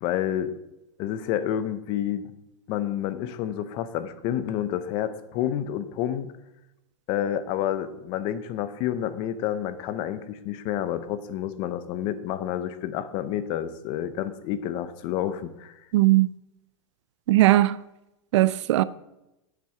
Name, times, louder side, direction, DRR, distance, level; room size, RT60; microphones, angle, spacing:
voice 1, 0.0-0.5 1.0-2.3 2.7-6.3 7.1-15.8, left 10 dB, 30° left, 0.6 m, -29 dB
voice 2, 15.9-16.3 17.3-17.8 18.3-18.8, right 16 dB, 60° right, 0.4 m, -19 dB
8.9 x 7.5 x 4.8 m
supercardioid pair, 170°, 17 cm